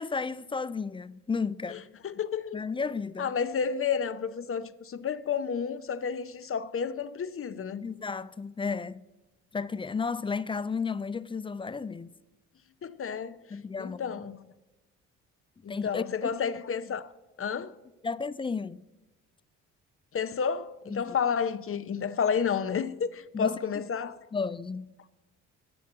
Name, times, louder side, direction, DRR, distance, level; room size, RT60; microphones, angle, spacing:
voice 1, 0.0-1.8 2.5-3.3 7.8-9.0 9.5-12.1 13.5-14.0 15.7-16.3 18.0-18.8 20.9-21.2 23.3-23.6 24.3-24.9, left 5 dB, 15° left, 0.3 m, -33 dB
voice 2, 1.7-2.6 3.2-7.9 12.8-13.4 13.8-14.5 15.6-17.1 17.4-17.8 20.1-24.3, left 6 dB, 35° left, 0.7 m, -31 dB
8.4 x 6.5 x 7.8 m
supercardioid pair, 55°, 37 cm